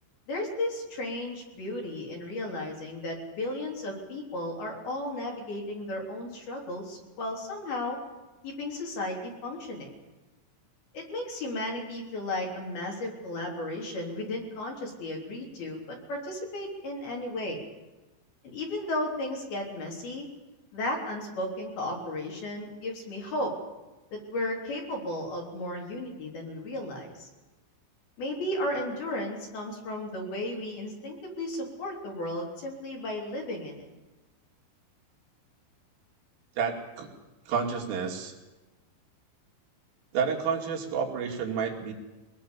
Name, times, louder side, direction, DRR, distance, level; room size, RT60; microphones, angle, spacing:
voice 1, 0.3-8.0 8.4-9.9 10.9-17.6 18.4-20.3 20.7-23.5 24.1-27.3 28.2-33.8, left 1 dB, 55° left, 0 dB, 5.1 m, -34 dB
voice 2, 36.6-37.1 37.5-38.3 40.1-41.9, right 6 dB, 80° right, 0 dB, 5.1 m, -30 dB
24.0 x 20.0 x 7.1 m, 1.1 s
omnidirectional pair, 5.6 m